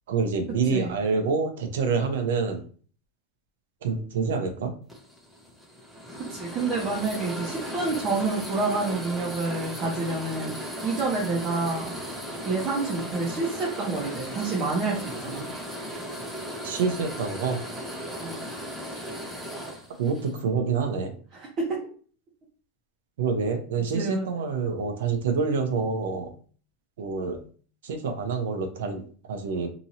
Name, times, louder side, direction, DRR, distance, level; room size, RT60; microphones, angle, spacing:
voice 1, 0.1-2.6 3.8-4.7 16.6-17.6 19.6-21.1 23.2-26.3 27.0-27.4 27.8-29.0 29.3-29.7, right 5 dB, 85° right, 6 dB, 0.8 m, -27 dB
sound 1, 4.9-20.4, equal, 5° right, 0.9 m, -36 dB
voice 2, 6.3-11.9 12.4-15.5 18.2-18.4 21.3-21.8 23.9-24.3, right 3 dB, 35° right, -2 dB, 1.0 m, -28 dB
2.9 x 2.6 x 2.8 m, 0.42 s
supercardioid pair, 130°, 0 cm